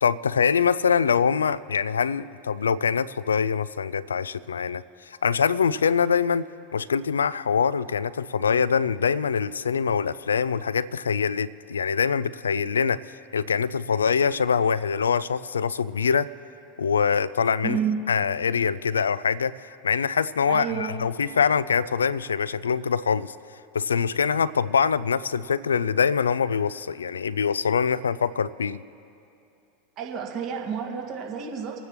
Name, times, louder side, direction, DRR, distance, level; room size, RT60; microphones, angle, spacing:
voice 1, 0.0-4.8 5.2-6.5 6.7-13.0 13.3-16.3 16.8-17.8 18.1-23.3 23.7-28.8, left 6 dB, 80° left, 18 dB, 0.3 m, -24 dB
voice 2, 17.6-18.0 20.5-20.9 30.0-31.8, right 7 dB, 45° right, 0 dB, 1.8 m, -29 dB
27.0 x 9.6 x 3.0 m, 2.7 s
figure-of-eight pair, 85°, 0 cm